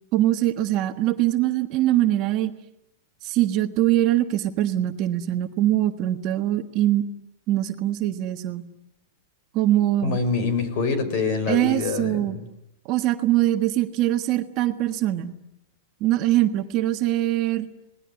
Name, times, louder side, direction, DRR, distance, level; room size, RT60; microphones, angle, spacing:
voice 1, 0.1-2.5 3.2-7.0 7.5-8.7 9.5-10.2 11.5-12.4 12.9-15.4 16.0-17.7, right 14 dB, 35° right, 7 dB, 1.5 m, -22 dB
voice 2, 10.0-12.4, left 4 dB, 45° left, 11 dB, 5.5 m, -25 dB
27.0 x 19.5 x 9.9 m, 0.83 s
supercardioid pair, 155°, 0 cm